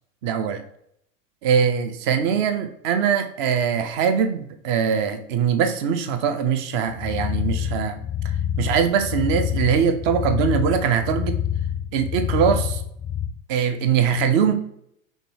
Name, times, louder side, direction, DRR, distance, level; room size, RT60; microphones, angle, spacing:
voice 1, 0.2-0.6 1.4-8.0 8.6-11.4 11.9-12.8 13.5-14.6, right 7 dB, 40° right, 9 dB, 0.6 m, -22 dB
sound 1, 7.0-13.3, left 10 dB, 10° left, 0.5 m, -27 dB
5.2 x 3.2 x 2.8 m, 0.72 s
figure-of-eight pair, 90°, 41 cm